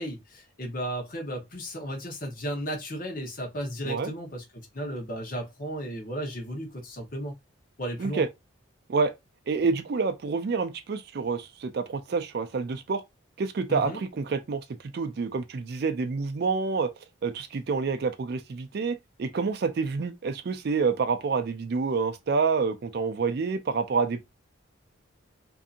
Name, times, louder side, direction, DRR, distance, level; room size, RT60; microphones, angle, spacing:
voice 1, 0.0-4.4 4.7-7.3 7.8-8.2 13.7-14.0, equal, 45° left, 0.9 m, -34 dB
voice 2, 9.5-13.0 13.4-16.9 17.2-24.2, right 4 dB, 50° right, 0.4 m, -28 dB
2.6 x 2.6 x 2.5 m
head